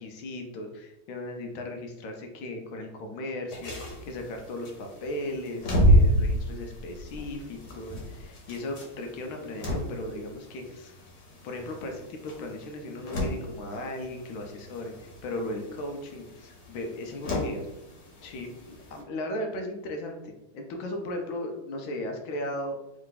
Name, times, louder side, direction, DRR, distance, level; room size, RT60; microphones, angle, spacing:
voice 1, 0.0-11.0 11.4-17.7 18.2-22.8, left 1 dB, 75° left, 3 dB, 1.3 m, -37 dB
sound 1, 3.5-19.0, equal, 55° left, 1.5 m, -30 dB
3.6 x 3.3 x 3.8 m, 0.94 s
omnidirectional pair, 2.3 m